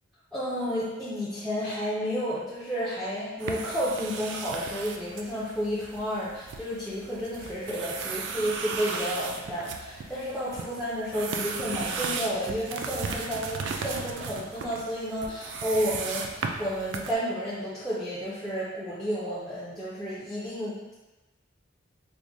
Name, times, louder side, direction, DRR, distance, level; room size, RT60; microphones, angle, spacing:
voice 1, 0.3-20.9, equal, ahead, -10 dB, 0.4 m, -31 dB
sound 1, 3.4-17.1, right 5 dB, 60° right, 0.3 m, -36 dB
4.6 x 2.1 x 2.6 m, 1.1 s
head